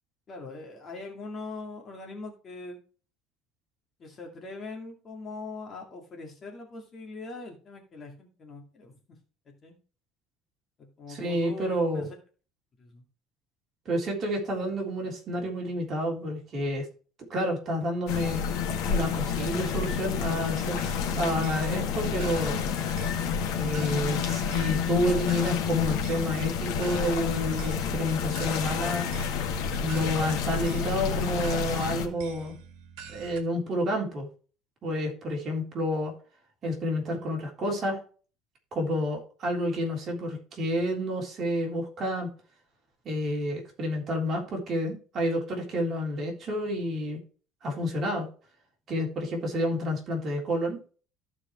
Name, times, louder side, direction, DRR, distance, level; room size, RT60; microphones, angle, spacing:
voice 1, 0.3-2.8 4.0-9.2 9.5-9.8 10.8-12.1 12.8-13.0, left 3 dB, 30° left, 2 dB, 2.1 m, -41 dB
voice 2, 11.1-12.0 13.8-16.9 17.3-18.4 18.9-20.8 21.1-22.6 23.6-29.1 29.8-32.5 33.1-34.3 34.8-36.1 36.6-38.0 38.7-42.3 43.0-47.2 47.6-48.3 48.9-50.8, equal, 35° right, 0 dB, 3.3 m, -29 dB
sound 1, 18.1-32.1, left 7 dB, 75° left, 1.8 m, -29 dB
sound 2, 20.8-33.4, right 7 dB, 75° right, 1.7 m, -47 dB
14.5 x 4.8 x 3.1 m, 0.38 s
cardioid pair, 155°, 0 cm